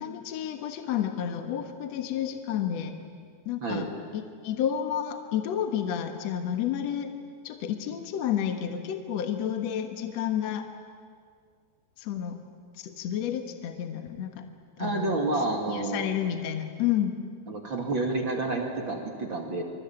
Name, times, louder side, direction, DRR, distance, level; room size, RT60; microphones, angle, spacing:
voice 1, 0.0-3.0 3.5-7.1 7.4-10.7 12.0-12.4 12.8-14.5 14.8-15.1 15.7-17.1, left 9 dB, 60° left, 5 dB, 1.8 m, -30 dB
voice 2, 14.8-16.1 17.5-19.6, right 2 dB, 35° right, 2 dB, 2.4 m, -29 dB
26.0 x 25.0 x 8.8 m, 2.1 s
omnidirectional pair, 4.7 m